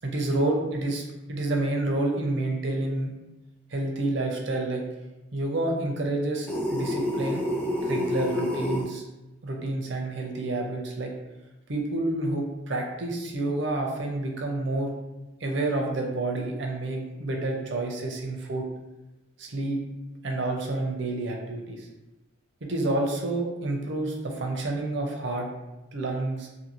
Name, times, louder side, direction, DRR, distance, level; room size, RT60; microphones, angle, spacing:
voice 1, 0.0-1.0 1.3-3.1 3.7-4.8 5.3-7.4 7.8-9.0 9.4-11.1 11.7-14.9 15.4-18.6 19.4-19.8 20.2-21.9 22.6-25.5 25.9-26.5, right 2 dB, 60° right, 1 dB, 0.5 m, -29 dB
sound 1, 6.5-8.9, left 1 dB, 10° left, 0.3 m, -28 dB
2.6 x 2.5 x 2.9 m, 1.0 s
head